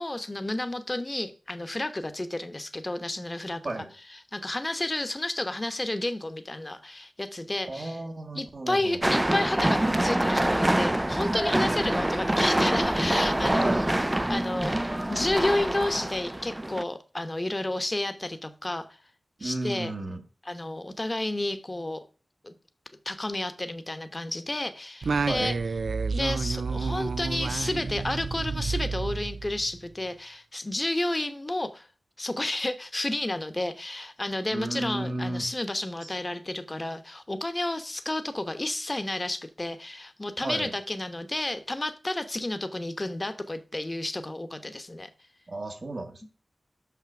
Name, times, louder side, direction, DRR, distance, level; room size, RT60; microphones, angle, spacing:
voice 1, 0.0-3.8 4.3-8.0 8.3-13.7 14.3-18.8 19.4-19.9 20.5-22.1 22.4-22.5 23.0-25.5 26.1-31.9 32.2-45.1 46.2-46.3, left 1 dB, 30° left, 10 dB, 1.0 m, -31 dB
voice 2, 7.7-9.0 13.6-13.9 19.4-20.2 25.3-25.5 34.5-35.5 36.0-36.1 40.4-40.7 45.5-46.3, right 2 dB, 55° right, 5 dB, 1.5 m, -33 dB
sound 1, 9.0-16.8, right 1 dB, 20° right, 0.3 m, -25 dB
Singing, 25.0-29.8, right 4 dB, 85° right, 0.4 m, -30 dB
5.9 x 5.9 x 5.9 m, 0.37 s
wide cardioid pair, 55°, 0 cm